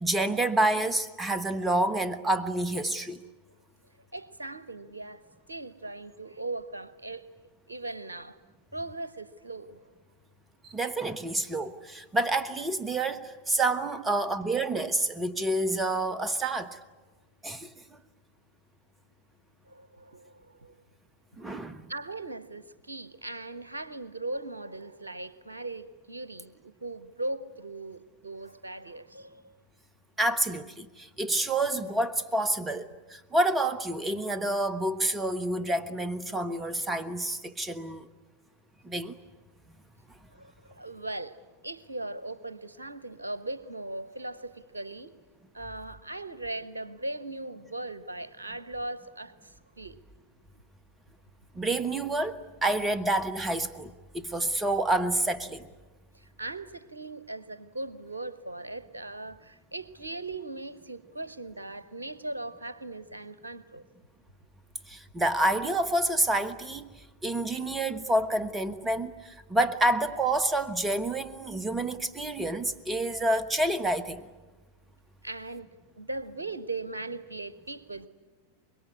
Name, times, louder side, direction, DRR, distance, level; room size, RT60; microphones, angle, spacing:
voice 1, 0.0-3.2 10.6-16.8 17.4-17.7 21.4-21.8 30.2-38.1 38.8-39.1 51.6-55.7 64.9-66.9 67.2-74.3, right 1 dB, 15° right, 14 dB, 1.2 m, -28 dB
voice 2, 4.1-7.3 7.7-8.4 8.7-9.8 19.6-20.8 21.9-29.6 31.4-31.5 40.3-45.2 45.5-49.9 56.1-63.8 75.2-75.7 76.0-78.1, right 2 dB, 80° right, 15 dB, 1.1 m, -39 dB
25.0 x 22.0 x 9.6 m, 1.2 s
figure-of-eight pair, 90°, 0 cm